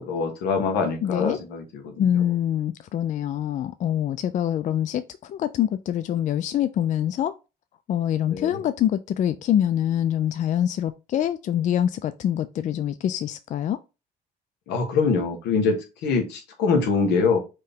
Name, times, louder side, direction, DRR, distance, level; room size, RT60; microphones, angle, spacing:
voice 1, 0.0-2.2 8.3-8.6 14.7-17.4, left 4 dB, 85° left, 1.4 m, -24 dB
voice 2, 1.0-1.4 2.0-5.0 5.3-7.3 7.9-13.8, left 10 dB, 45° left, 0.4 m, -25 dB
4.5 x 3.2 x 3.6 m
cardioid pair, 110°, 17 cm